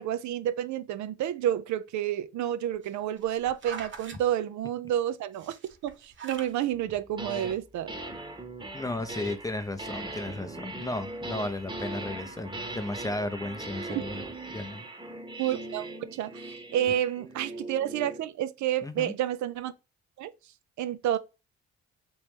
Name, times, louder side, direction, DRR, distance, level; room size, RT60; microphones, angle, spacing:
voice 1, 0.0-5.6 5.8-7.9 13.9-14.0 15.4-19.7 20.2-20.3 20.8-21.2, right 11 dB, 70° right, 0.5 m, -30 dB
sound 1, 2.7-4.2 5.3-6.6 7.2-7.3, right 5 dB, 40° right, 0.9 m, -43 dB
sound 2, 6.9-7.6 7.9-18.3, right 2 dB, 15° right, 1.0 m, -40 dB
voice 2, 8.7-14.2 14.5-14.8 18.8-19.1, left 2 dB, 10° left, 0.5 m, -34 dB
3.1 x 2.9 x 3.3 m
cardioid pair, 90°, 30 cm